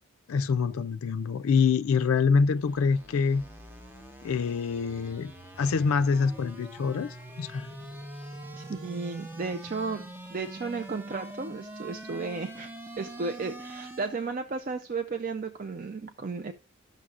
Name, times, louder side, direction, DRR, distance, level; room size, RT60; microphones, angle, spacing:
voice 1, 0.3-3.4 4.2-5.3 5.6-7.7, left 5 dB, 75° left, 0.4 m, -25 dB
sound 1, 2.2-14.4, right 1 dB, 10° right, 0.7 m, -44 dB
voice 2, 8.6-16.5, right 4 dB, 40° right, 0.4 m, -34 dB
12.5 x 6.5 x 2.4 m
head